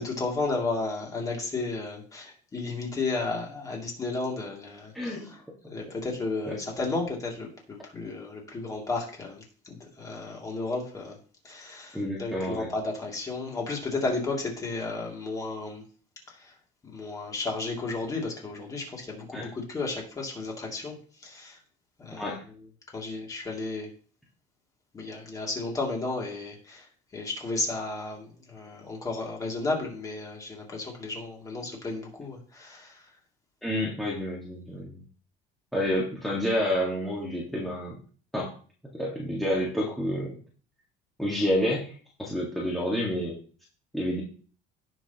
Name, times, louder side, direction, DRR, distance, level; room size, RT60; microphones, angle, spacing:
voice 1, 0.0-5.2 5.7-11.2 11.4-15.8 16.4-16.5 16.9-21.0 21.2-21.6 22.0-22.3 22.9-23.9 24.9-26.8 27.1-33.0, left 3 dB, 20° left, -1 dB, 2.6 m, -33 dB
voice 2, 4.9-5.3 6.5-6.6 11.9-12.7 19.3-19.5 22.2-22.4 33.6-35.0 35.7-38.0 38.3-38.5 38.9-40.4 41.2-43.4 43.9-44.2, equal, ahead, -6 dB, 1.8 m, -29 dB
17.0 x 6.2 x 3.0 m, 0.41 s
cardioid pair, 160°, 17 cm